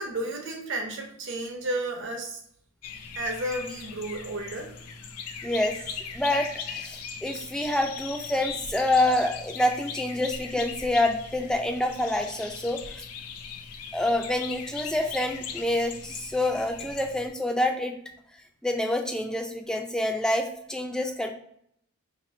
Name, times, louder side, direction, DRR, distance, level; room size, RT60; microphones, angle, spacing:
voice 1, 0.0-2.4 3.1-4.7, right 1 dB, 55° right, 1 dB, 0.8 m, -32 dB
sound 1, 2.8-17.3, left 6 dB, 80° left, 0.5 m, -39 dB
voice 2, 5.4-5.8 6.1-12.8 13.9-18.0 18.6-21.3, left 1 dB, 5° left, 4 dB, 0.3 m, -27 dB
2.9 x 2.7 x 4.1 m, 0.70 s
head